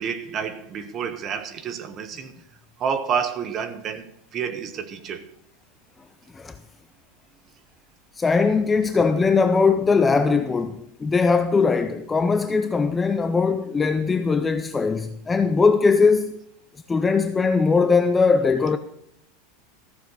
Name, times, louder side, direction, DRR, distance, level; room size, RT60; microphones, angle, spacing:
voice 1, 0.0-2.3 2.8-5.3, right 7 dB, 25° right, 0.9 m, -29 dB
voice 2, 8.2-16.3 16.9-18.8, left 4 dB, 10° left, 0.4 m, -20 dB
14.5 x 7.0 x 6.1 m
supercardioid pair, 175°, 0 cm